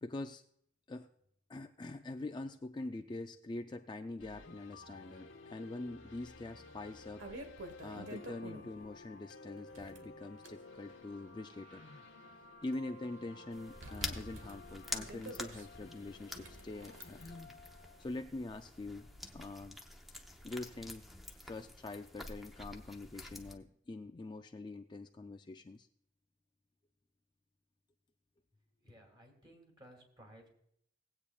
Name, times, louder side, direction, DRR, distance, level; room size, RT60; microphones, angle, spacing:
voice 1, 0.0-0.4 0.9-1.1 1.5-7.3 7.8-12.0 12.6-17.5 18.0-19.1 19.3-19.8 20.4-21.1 21.4-25.9, left 2 dB, 25° left, 6 dB, 0.4 m, -44 dB
sound 1, 4.2-19.0, left 3 dB, 90° left, 1.2 m, -55 dB
sound 2, 6.2-6.3 6.8-8.9 9.6-10.6 11.3-12.7 13.0-13.1 13.8-15.7 16.3-17.0, right 1 dB, 75° right, 1.2 m, -49 dB
sound 3, 13.5-23.6, left 1 dB, ahead, 0.8 m, -48 dB
voice 2, 28.8-30.5, equal, 25° right, 2 dB, 2.6 m, -58 dB
19.0 x 8.5 x 2.4 m, 0.70 s
head